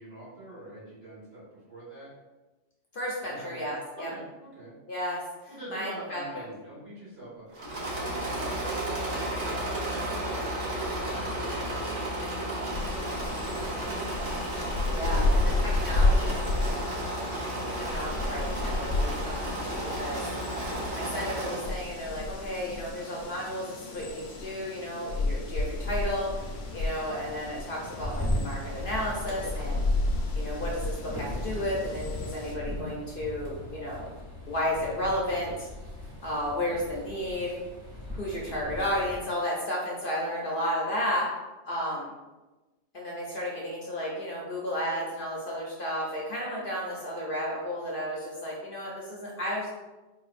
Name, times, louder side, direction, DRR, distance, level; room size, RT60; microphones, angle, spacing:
voice 1, 0.0-2.1 3.3-4.7 5.5-10.5 11.0-13.9 14.2-14.5 15.1-16.5 36.6-36.8, right 1 dB, 55° right, -8 dB, 1.7 m, -45 dB
voice 2, 2.9-4.1 4.9-5.2 5.7-6.4 14.9-16.3 17.7-20.2 20.9-29.8 30.3-34.1 34.5-35.7 36.2-37.6 38.1-41.3 41.7-42.1 42.9-49.7, equal, 55° left, -3 dB, 0.7 m, -33 dB
Engine / Mechanisms, 7.5-21.8, right 1 dB, 75° right, 1.2 m, -33 dB
sound 1, 12.7-32.5, left 2 dB, 90° left, 1.0 m, -32 dB
sound 2, 25.8-39.2, left 1 dB, 30° right, 0.9 m, -38 dB
4.2 x 2.5 x 2.4 m, 1.1 s
omnidirectional pair, 1.3 m